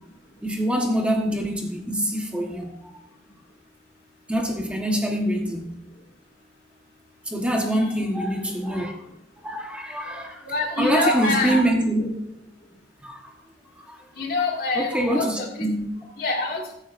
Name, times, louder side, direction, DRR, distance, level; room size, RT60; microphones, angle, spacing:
voice 1, 0.4-2.8 4.3-5.8 7.3-8.9 9.4-10.4 10.8-12.1 13.0-13.3 13.9-14.0 14.8-15.7, right 1 dB, 5° right, 0 dB, 1.3 m, -25 dB
voice 2, 7.6-8.0 10.4-11.6 14.2-15.7 16.2-16.6, left 3 dB, 55° left, 0 dB, 2.3 m, -26 dB
15.0 x 9.9 x 2.6 m, 0.77 s
head